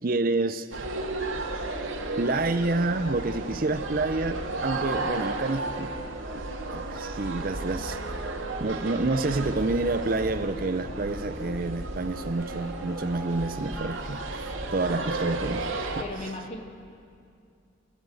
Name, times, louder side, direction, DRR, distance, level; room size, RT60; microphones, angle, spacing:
voice 1, 0.0-0.8 2.2-5.9 6.7-8.0 8.6-16.0, right 2 dB, 45° right, 0.6 m, -28 dB
sound 1, 0.7-16.0, right 2 dB, 75° right, 2.3 m, -34 dB
sound 2, 1.7-11.9 12.5-15.2, right 1 dB, 5° left, 2.3 m, -46 dB
voice 2, 16.0-16.6, left 2 dB, 30° left, 2.1 m, -36 dB
30.0 x 14.5 x 7.9 m
head